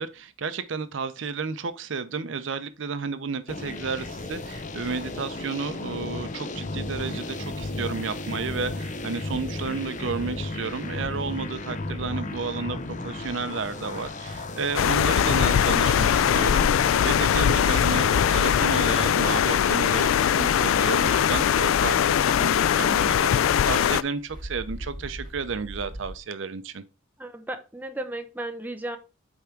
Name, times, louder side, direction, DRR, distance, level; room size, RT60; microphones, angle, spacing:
voice 1, 0.0-26.8, right 5 dB, 70° right, 0.6 m, -32 dB
sound 1, 3.5-19.5, left 2 dB, 40° left, 0.8 m, -34 dB
sound 2, 9.3-26.2, equal, 45° right, 2.0 m, -47 dB
sound 3, 14.7-24.0, left 9 dB, 80° left, 0.3 m, -21 dB
voice 2, 27.2-29.0, right 1 dB, 10° right, 0.8 m, -34 dB
8.4 x 3.5 x 4.5 m
head